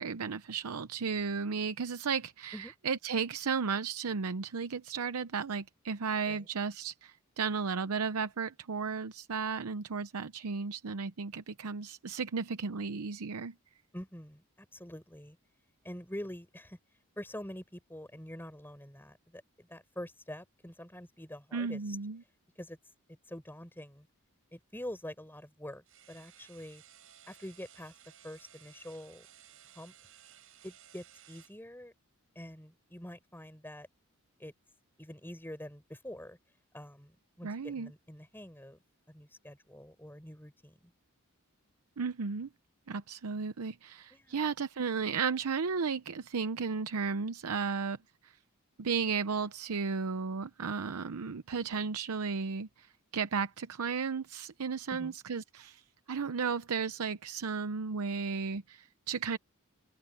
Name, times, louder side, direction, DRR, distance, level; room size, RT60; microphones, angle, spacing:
voice 1, 0.0-13.5 21.5-22.2 37.4-37.9 42.0-42.5 42.9-48.0 48.2-48.3 48.8-55.8 56.1-59.4, right 5 dB, 90° right, 0.7 m, -34 dB
voice 2, 13.9-15.4 15.8-16.8 17.2-22.0 22.6-22.8 23.3-24.1 24.5-26.8 27.3-27.9 28.2-29.3 29.7-29.9 30.6-31.9 32.3-33.9 34.4-34.5 35.0-36.4 36.7-38.8 39.1-40.9 44.1-44.5 54.9-55.1, left 1 dB, 10° left, 4.3 m, -46 dB
sound 1, 25.9-31.6, right 10 dB, 65° right, 7.9 m, -58 dB
open air
head